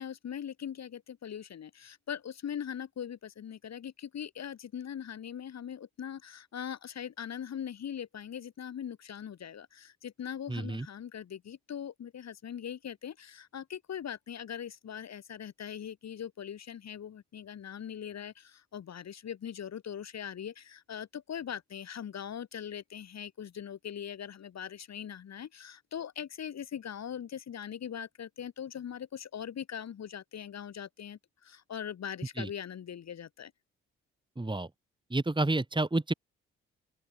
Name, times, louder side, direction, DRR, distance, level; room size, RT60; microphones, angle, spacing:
voice 1, 0.0-33.5, left 9 dB, 55° left, 2.3 m, -41 dB
voice 2, 10.5-10.9 32.4-32.5 34.4-34.7 35.1-36.1, right 2 dB, 15° right, 2.6 m, -29 dB
open air
hypercardioid pair, 40°, 32 cm